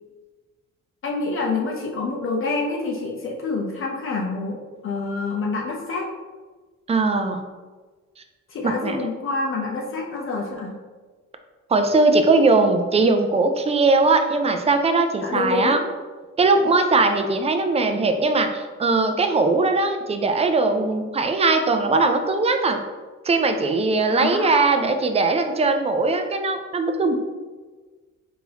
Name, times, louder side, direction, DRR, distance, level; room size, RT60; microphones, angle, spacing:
voice 1, 1.0-6.1 8.5-10.8 15.2-15.8 24.1-24.9, left 3 dB, 45° left, -1 dB, 0.6 m, -27 dB
voice 2, 6.9-7.4 8.6-9.0 11.7-15.8 16.4-22.8 23.2-27.1, right 3 dB, 20° right, 6 dB, 0.3 m, -20 dB
3.8 x 2.7 x 2.8 m, 1.3 s
cardioid pair, 90°, 30 cm